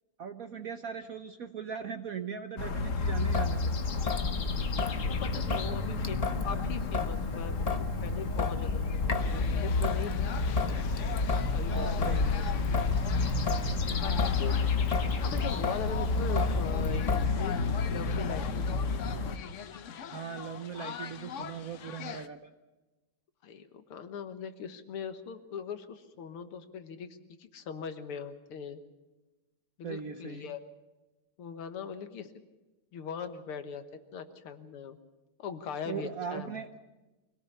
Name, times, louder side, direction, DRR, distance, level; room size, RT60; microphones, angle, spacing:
voice 1, 0.2-3.6 11.7-12.5 20.1-22.5 29.8-30.5 35.9-36.7, right 7 dB, 60° right, 8 dB, 1.0 m, -39 dB
sound 1, 2.6-19.4, left 4 dB, 45° left, 1.3 m, -31 dB
Traffic noise roadway noise / Drip / Trickle dribble, 3.3-17.3, left 3 dB, 25° left, 0.8 m, -34 dB
voice 2, 4.1-4.6 5.0-10.3 11.5-12.4 14.0-14.6 15.2-17.5 17.9-18.9 23.4-27.1 27.4-28.8 29.8-30.6 31.4-32.3 32.9-33.8 34.1-35.0 35.4-36.6, left 7 dB, 90° left, 9 dB, 2.2 m, -40 dB
sound 2, 9.2-22.3, left 8 dB, 65° left, 0.7 m, -42 dB
24.5 x 18.0 x 7.0 m, 1.1 s
omnidirectional pair, 2.3 m